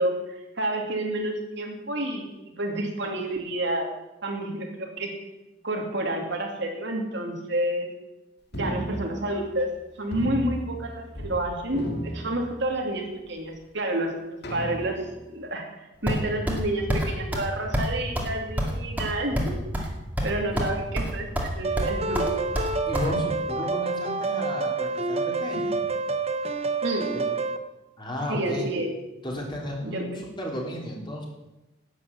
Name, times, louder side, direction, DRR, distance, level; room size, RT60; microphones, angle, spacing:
voice 1, 0.0-2.3 2.6-3.9 4.2-5.2 5.6-7.9 8.5-19.9 20.2-22.3 26.8-27.1 28.3-28.9 29.8-30.2, right 1 dB, 65° right, 2 dB, 2.5 m, -29 dB
sound 1, 8.5-9.8 10.1-11.4 11.7-13.0 13.6-13.7 14.4-15.3, right 1 dB, 60° left, 1.9 m, -34 dB
sound 2, 16.1-16.6 16.9-17.1 17.3-17.5 17.7-17.9 18.2-18.3 18.6-19.9 20.2-20.7 21.0-21.5 21.8-23.1, equal, 10° right, 2.3 m, -26 dB
sound 3, 21.6-27.6, right 3 dB, 35° right, 0.8 m, -28 dB
voice 2, 22.9-25.8 27.1-27.2 28.0-28.7 29.2-31.3, left 1 dB, 25° left, -1 dB, 3.3 m, -33 dB
11.0 x 8.6 x 8.6 m, 1.0 s
head